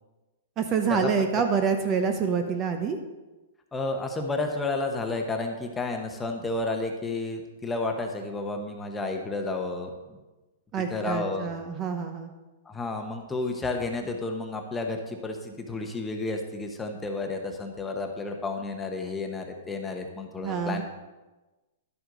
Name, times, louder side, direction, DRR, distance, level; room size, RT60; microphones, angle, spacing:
voice 1, 0.6-3.0 10.7-12.3 20.4-20.8, right 6 dB, 25° right, 6 dB, 0.7 m, -27 dB
voice 2, 3.7-10.2 10.8-11.5 12.7-20.8, left 3 dB, 10° left, 3 dB, 1.0 m, -31 dB
11.0 x 7.8 x 3.9 m, 1.1 s
hypercardioid pair, 150°, 0 cm